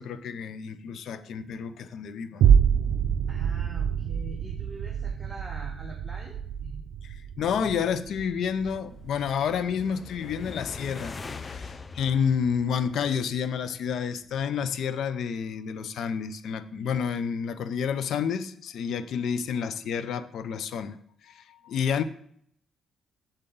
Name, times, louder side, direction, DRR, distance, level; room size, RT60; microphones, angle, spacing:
voice 1, 0.0-2.6 3.2-3.3 7.0-21.0 21.2-22.0, left 7 dB, 70° left, 13 dB, 0.6 m, -30 dB
sound 1, 2.4-11.0 11.4-11.5, right 8 dB, 80° right, 0.5 m, -27 dB
voice 2, 3.3-6.9, right 1 dB, 10° right, -1 dB, 1.4 m, -44 dB
sound 2, 8.2-13.5, left 4 dB, 30° left, 0.5 m, -42 dB
8.0 x 8.0 x 3.8 m, 0.66 s
cardioid pair, 90°, 0 cm